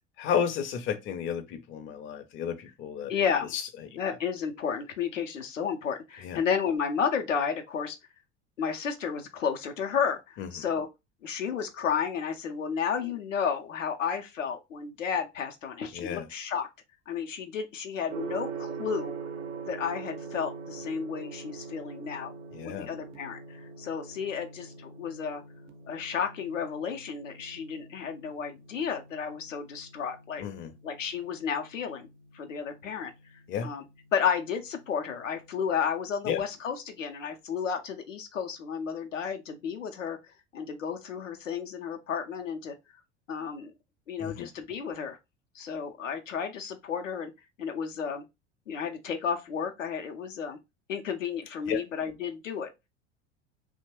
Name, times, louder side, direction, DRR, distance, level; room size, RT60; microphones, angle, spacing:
voice 1, 0.2-3.1 3.5-3.6 6.2-6.4 10.4-10.5 15.9-16.2 22.5-22.9 30.4-30.7 33.5-33.7 36.3-36.4 44.2-44.5 51.7-51.8, left 8 dB, 35° left, 0.6 m, -32 dB
voice 2, 3.1-3.5 4.0-8.0 8.6-10.9 11.2-16.7 17.1-19.2 19.7-22.3 22.6-25.4 25.9-30.4 30.8-32.1 32.3-33.1 33.6-33.8 34.1-42.8 43.3-43.7 44.1-45.2 45.5-47.3 47.6-48.2 48.7-50.6 50.9-52.7, left 7 dB, 80° left, 0.6 m, -32 dB
Gong, 18.1-36.0, right 5 dB, 65° right, 0.6 m, -44 dB
2.8 x 2.1 x 3.0 m
figure-of-eight pair, 70°, 37 cm